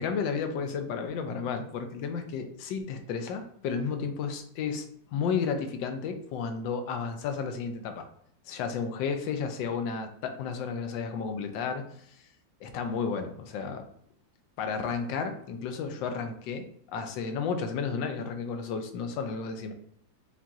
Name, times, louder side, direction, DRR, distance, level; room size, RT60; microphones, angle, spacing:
voice 1, 0.0-8.1 8.5-11.8 12.6-13.8 14.6-19.7, left 5 dB, 80° left, 7 dB, 1.3 m, -32 dB
5.8 x 2.7 x 2.4 m, 0.68 s
omnidirectional pair, 2.0 m